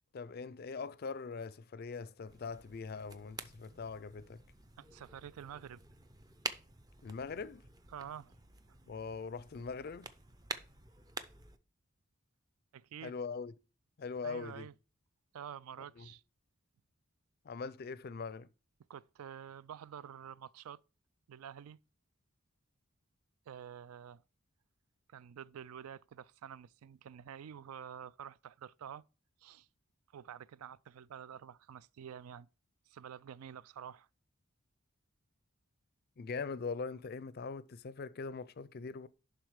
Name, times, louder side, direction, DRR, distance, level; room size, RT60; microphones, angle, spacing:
voice 1, 0.1-4.4 7.0-7.6 8.9-10.1 13.0-13.5 14.0-14.7 16.0-16.1 17.4-18.5 36.2-39.1, left 4 dB, 45° left, 0.4 m, -42 dB
sound 1, 2.2-11.6, right 3 dB, 15° right, 0.4 m, -48 dB
voice 2, 4.8-5.8 7.9-8.3 8.7-8.8 12.7-13.1 14.2-14.7 15.3-16.2 18.9-20.8 21.3-21.8 23.5-24.2 25.1-29.0 29.4-29.7 30.1-32.5 32.9-34.1, right 9 dB, 80° right, 0.3 m, -48 dB
11.0 x 3.8 x 4.7 m
head